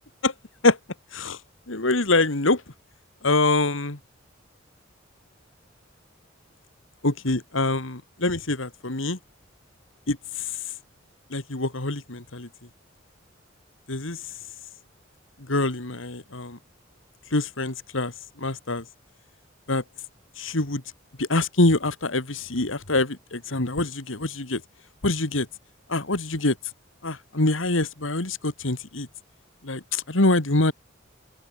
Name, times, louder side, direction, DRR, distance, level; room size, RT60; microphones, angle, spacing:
voice 1, 1.7-2.6 3.2-4.0 7.0-9.2 10.1-10.7 11.3-12.5 13.9-14.3 15.5-16.6 17.3-18.1 18.4-18.8 19.7-19.8 20.4-20.8 21.2-24.6 25.0-25.5 25.9-26.5 27.0-29.1 29.6-30.7, left 2 dB, 80° left, 2.5 m, -25 dB
open air
head